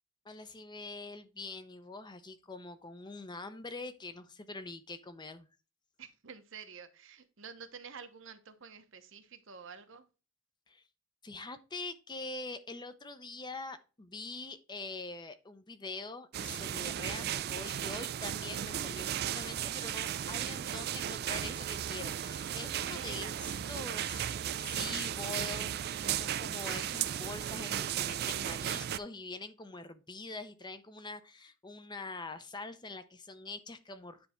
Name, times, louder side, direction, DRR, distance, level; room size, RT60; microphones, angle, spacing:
voice 1, 0.2-5.5 10.7-10.8 11.2-23.3 23.7-34.3, left 3 dB, 20° left, 0.6 m, -44 dB
voice 2, 6.0-10.0 22.9-23.4, right 6 dB, 70° right, 0.9 m, -49 dB
sound 1, 16.3-29.0, right 10 dB, 50° right, 0.3 m, -35 dB
9.6 x 3.4 x 4.3 m
head